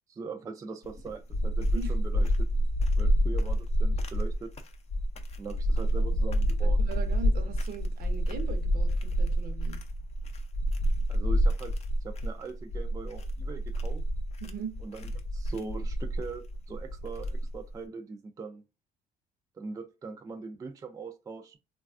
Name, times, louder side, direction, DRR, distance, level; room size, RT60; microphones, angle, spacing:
voice 1, 0.1-2.3 3.0-4.5 5.4-7.0 11.1-11.7 12.0-14.0 14.8-18.6 19.6-21.6, right 4 dB, 20° right, 0.3 m, -41 dB
sound 1, 0.8-17.7, equal, 40° left, 0.5 m, -28 dB
voice 2, 6.6-9.8 14.4-14.7, right 6 dB, 60° right, 0.8 m, -40 dB
3.1 x 2.3 x 2.4 m
cardioid pair, 110°, 17 cm